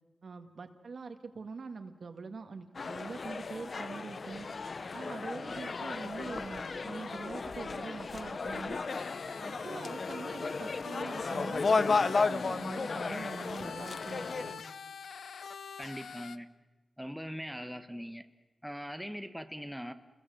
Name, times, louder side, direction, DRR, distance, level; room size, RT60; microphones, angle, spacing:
voice 1, 0.2-4.5 4.9-8.8 9.4-14.6, right 4 dB, 65° right, 7 dB, 2.0 m, -44 dB
sound 1, 2.7-14.5, left 4 dB, 50° left, 0.8 m, -34 dB
sound 2, 8.9-16.4, left 6 dB, 85° left, 0.8 m, -45 dB
voice 2, 15.8-16.5 17.0-18.2 18.6-19.9, equal, ahead, 9 dB, 1.3 m, -41 dB
29.0 x 21.0 x 7.8 m, 1.2 s
wide cardioid pair, 95°, 0 cm